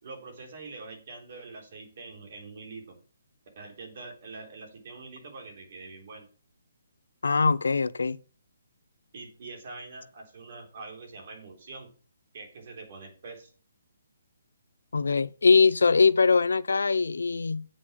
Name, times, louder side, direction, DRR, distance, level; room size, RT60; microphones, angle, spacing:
voice 1, 0.0-3.0 3.6-6.3 9.1-11.9 12.3-13.5, right 3 dB, 45° right, 3.6 m, -44 dB
voice 2, 7.2-8.2 14.9-17.7, left 4 dB, 90° left, 0.6 m, -22 dB
8.7 x 6.1 x 6.3 m
hypercardioid pair, 165°, 0 cm